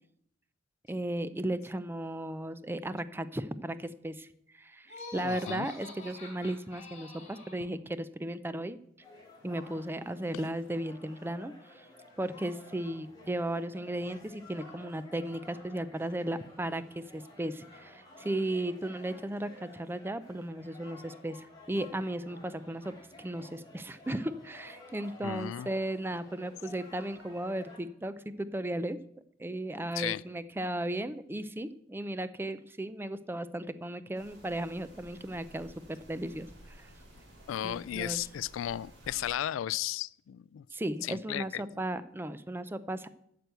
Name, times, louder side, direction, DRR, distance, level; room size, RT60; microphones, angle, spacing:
voice 1, 0.9-4.3 4.6-8.8 9.4-11.9 12.2-29.0 29.4-36.9 37.6-38.2 40.7-43.1, right 1 dB, 10° right, 14 dB, 0.4 m, -35 dB
Laughter, 4.8-7.7, left 3 dB, 35° left, 3.6 m, -46 dB
voice 2, 5.2-5.7 25.2-25.7 30.0-30.2 37.5-40.7 41.0-41.6, left 11 dB, 80° left, 22 dB, 0.3 m, -35 dB
sound 1, 9.0-27.8, left 2 dB, 20° left, 3.6 m, -53 dB
sound 2, 34.1-39.5, equal, 60° right, 3.8 m, -54 dB
9.1 x 6.9 x 7.8 m, 0.73 s
head